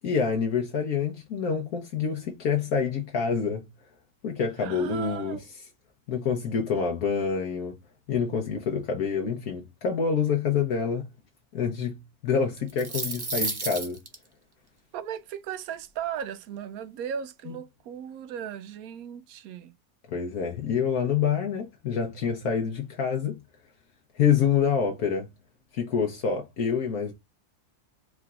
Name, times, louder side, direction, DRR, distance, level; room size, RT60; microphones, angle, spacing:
voice 1, 0.0-3.7 4.2-5.4 6.1-7.8 8.1-11.1 11.5-14.0 17.5-17.6 20.1-23.3 24.1-25.3 25.7-27.1, left 6 dB, 70° left, 1.2 m, -27 dB
voice 2, 4.6-5.4 14.9-19.7, right 9 dB, 75° right, 1.0 m, -36 dB
sound 1, 12.6-14.1, right 3 dB, 25° right, 0.5 m, -31 dB
4.8 x 3.3 x 2.4 m
omnidirectional pair, 1.6 m